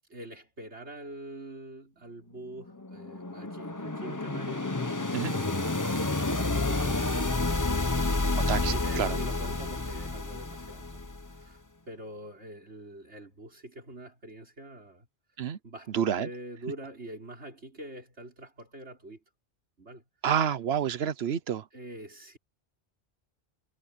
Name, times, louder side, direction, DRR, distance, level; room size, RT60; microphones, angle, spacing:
voice 1, 0.1-8.1 8.8-15.1 15.6-19.2 19.8-20.0 21.7-22.4, right 1 dB, 90° right, 5.5 m, -45 dB
sound 1, 2.5-11.4, left 2 dB, 20° left, 1.0 m, -30 dB
voice 2, 8.5-9.2 15.4-15.6 15.9-16.3 20.2-21.7, right 8 dB, 70° right, 1.1 m, -28 dB
omnidirectional pair, 1.1 m